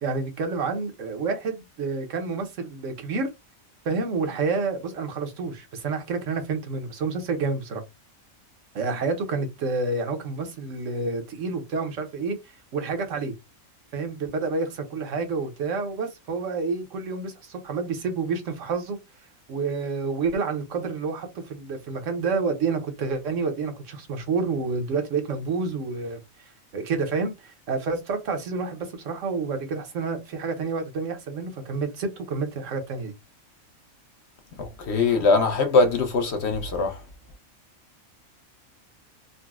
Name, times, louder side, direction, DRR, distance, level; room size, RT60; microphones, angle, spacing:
voice 1, 0.0-3.3 3.8-7.8 8.7-13.3 13.9-19.0 19.5-26.2 26.7-33.1, right 4 dB, 70° right, 1.0 m, -29 dB
voice 2, 34.6-37.0, left 3 dB, 60° left, 0.8 m, -22 dB
3.9 x 2.0 x 2.3 m
omnidirectional pair, 1.4 m